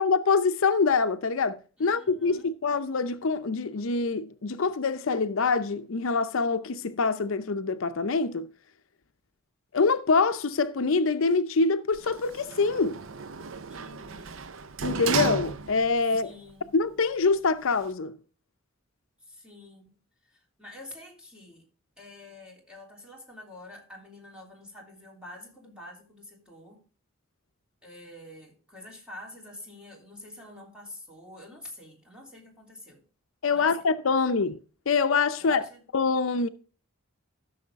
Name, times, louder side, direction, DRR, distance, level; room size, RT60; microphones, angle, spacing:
voice 1, 0.0-8.5 9.7-13.0 14.8-16.3 16.7-18.2 33.4-34.6 34.9-35.6 35.9-36.5, left 4 dB, 70° left, 0.6 m, -25 dB
voice 2, 1.8-2.5 13.7-14.4 16.1-16.7 19.2-19.9 20.2-21.6 22.0-26.8 27.8-33.0 33.5-33.8 35.4-35.8, left 1 dB, 5° right, 3.3 m, -47 dB
Sliding door, 11.9-16.1 16.5-16.6, right 5 dB, 70° right, 0.6 m, -34 dB
14.0 x 6.5 x 3.6 m
head